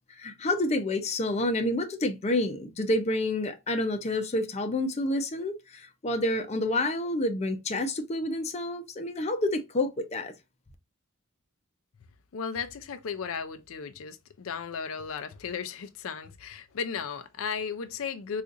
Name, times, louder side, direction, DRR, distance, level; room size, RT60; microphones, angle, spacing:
voice 1, 0.2-10.3, left 1 dB, 30° left, 0.5 m, -29 dB
voice 2, 12.3-18.4, left 6 dB, 85° left, 0.5 m, -35 dB
3.8 x 2.5 x 2.4 m
head